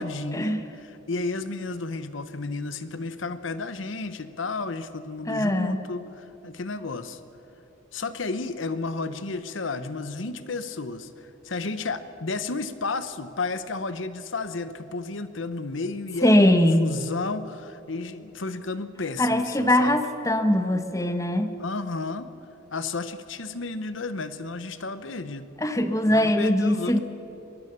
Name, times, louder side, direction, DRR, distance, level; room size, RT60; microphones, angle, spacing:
voice 1, 0.0-7.2 7.9-20.0 21.6-22.3 22.7-25.5 26.1-27.0, left 3 dB, 80° left, 12 dB, 1.0 m, -32 dB
voice 2, 5.3-5.8 16.2-16.9 19.2-21.5 25.6-27.0, left 1 dB, 15° left, 8 dB, 1.1 m, -21 dB
23.5 x 20.0 x 6.8 m, 3.0 s
head